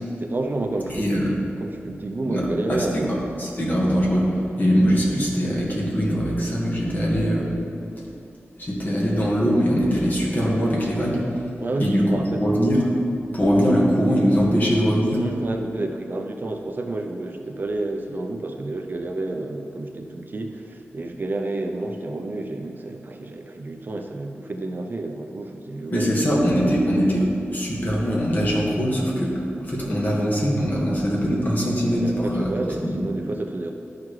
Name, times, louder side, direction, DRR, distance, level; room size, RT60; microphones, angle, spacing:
voice 1, 0.1-3.2 11.6-12.5 15.1-26.1 29.8-30.0 32.0-33.7, right 2 dB, 45° right, 3 dB, 0.5 m, -30 dB
voice 2, 2.7-4.3 4.6-7.5 8.6-11.2 11.8-12.0 12.3-12.9 13.3-15.2 25.9-29.3 29.7-32.5 32.8-33.0, equal, 40° left, -4 dB, 1.7 m, -22 dB
12.0 x 4.8 x 3.2 m, 2.6 s
wide cardioid pair, 110°, 5 cm